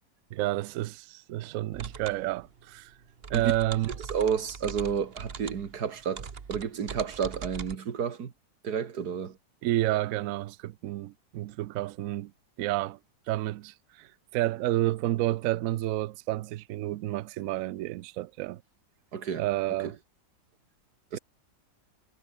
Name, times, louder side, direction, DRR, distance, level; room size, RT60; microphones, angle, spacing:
voice 1, 0.3-2.9 3.3-3.9 9.6-12.3 12.6-13.0 13.3-18.6 19.4-20.0 21.1-21.2, right 16 dB, 90° right, 0.7 m, -30 dB
sound 1, 1.7-7.8, right 6 dB, 35° right, 1.3 m, -42 dB
voice 2, 4.1-8.3 8.6-9.4 9.9-10.0 19.1-19.5 19.8-19.9 21.1-21.2, right 7 dB, 55° right, 2.2 m, -31 dB
omnidirectional pair, 2.0 m